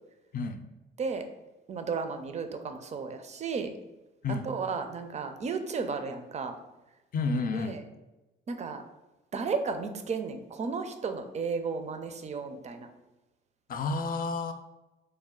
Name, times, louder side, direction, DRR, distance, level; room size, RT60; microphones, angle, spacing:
voice 1, 1.7-3.7 4.4-6.6 7.5-7.8 8.5-8.8 9.3-12.9, right 5 dB, 35° right, 7 dB, 0.4 m, -34 dB
voice 2, 7.1-7.8 13.7-14.5, left 3 dB, 45° left, 6 dB, 0.4 m, -30 dB
3.2 x 2.3 x 3.7 m, 1.1 s
cardioid pair, 90°, 20 cm